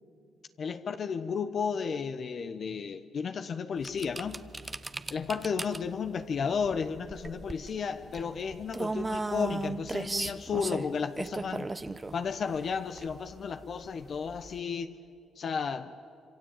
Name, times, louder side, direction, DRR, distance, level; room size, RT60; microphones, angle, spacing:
voice 1, 0.6-4.4 5.1-11.7 12.1-14.9 15.4-15.9, left 6 dB, 55° left, 8 dB, 1.1 m, -33 dB
sound 1, 3.8-14.6, right 3 dB, 20° right, 1.0 m, -37 dB
27.0 x 24.5 x 9.0 m, 2.4 s
supercardioid pair, 75°, 0 cm